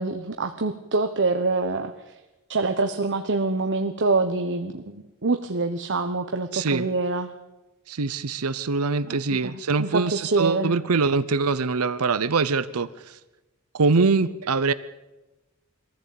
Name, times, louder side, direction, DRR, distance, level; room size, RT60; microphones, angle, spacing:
voice 1, 0.0-1.9 2.5-7.3 9.4-10.7, right 3 dB, 55° right, 7 dB, 1.1 m, -25 dB
voice 2, 6.5-6.9 7.9-13.2 13.7-14.7, right 4 dB, 75° right, 15 dB, 0.7 m, -23 dB
23.0 x 15.0 x 8.6 m, 1.1 s
head